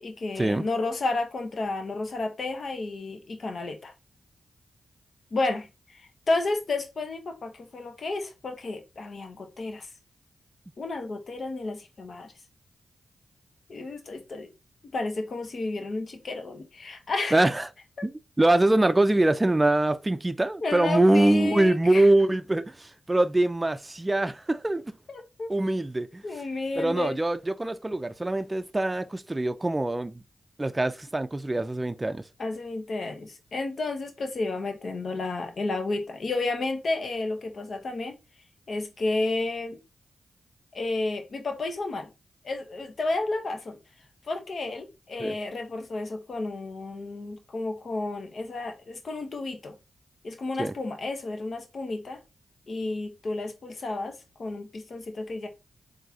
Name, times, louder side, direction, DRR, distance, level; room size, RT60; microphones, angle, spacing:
voice 1, 0.0-3.9 5.3-9.9 10.8-12.3 13.7-14.5 14.9-17.5 20.6-22.1 25.1-25.5 26.2-27.2 32.4-38.1 38.7-39.8 40.7-42.1 42.4-43.8 44.3-49.7 50.2-52.2 52.7-55.5, left 2 dB, 65° left, 0.9 m, -32 dB
voice 2, 17.3-17.7 18.0-25.0 25.5-26.2 26.8-30.2 30.6-32.2 45.2-45.4 50.6-50.7, right 2 dB, 25° right, 0.4 m, -24 dB
3.9 x 2.7 x 2.8 m
supercardioid pair, 40°, 0 cm